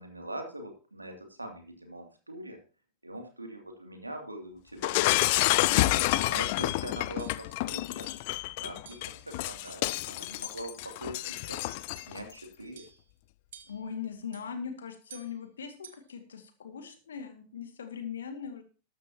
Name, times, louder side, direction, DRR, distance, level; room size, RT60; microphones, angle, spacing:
voice 1, 0.0-2.6 3.0-5.4 6.1-8.2 8.6-11.8 12.1-12.8, right 1 dB, 85° right, 4 dB, 2.7 m, -43 dB
Shatter, 4.8-12.2, left 19 dB, 50° left, 0.5 m, -29 dB
sound 1, 5.5-5.7 6.3-6.6 7.2-7.5 8.0-8.3 8.9-9.2 9.6-10.0 10.4-10.7 11.2-11.5 11.9-12.2 12.8-13.1 13.5-13.9 14.3-14.5 15.1-15.4 15.8-16.1, right 9 dB, 60° right, 1.7 m, -53 dB
voice 2, 13.7-18.6, left 7 dB, 65° left, 7 dB, 2.1 m, -40 dB
13.5 x 12.0 x 2.9 m, 0.35 s
figure-of-eight pair, 90°, 0 cm